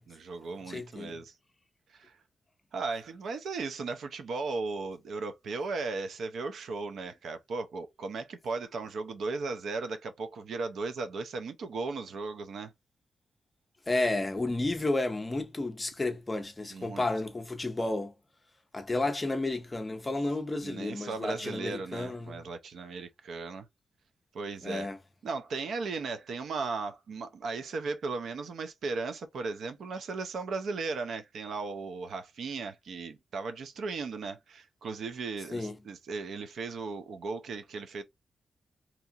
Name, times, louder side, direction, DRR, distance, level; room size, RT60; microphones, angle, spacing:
voice 1, 0.1-1.3 1.9-2.2 2.7-12.7 16.7-17.0 20.6-23.7 24.3-24.9 25.2-38.0, right 4 dB, 70° right, 0.5 m, -36 dB
voice 2, 0.7-1.2 13.9-18.1 18.7-22.4 24.6-25.0 35.5-35.8, left 2 dB, 20° left, 0.5 m, -32 dB
2.8 x 2.4 x 2.7 m
wide cardioid pair, 160°, 0 cm